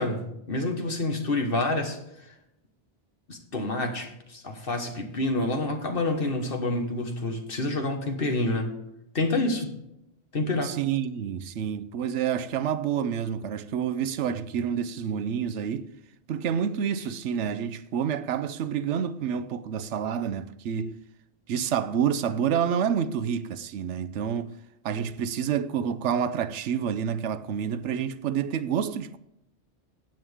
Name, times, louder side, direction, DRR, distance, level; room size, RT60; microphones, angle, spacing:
voice 1, 0.0-2.0 3.3-8.7 9.1-9.7 10.3-10.7, left 2 dB, 55° left, 1.6 m, -28 dB
voice 2, 10.6-15.9 16.3-21.0 21.5-24.6 24.8-29.2, right 8 dB, 80° right, 1.0 m, -28 dB
15.5 x 8.9 x 3.5 m
omnidirectional pair, 1.2 m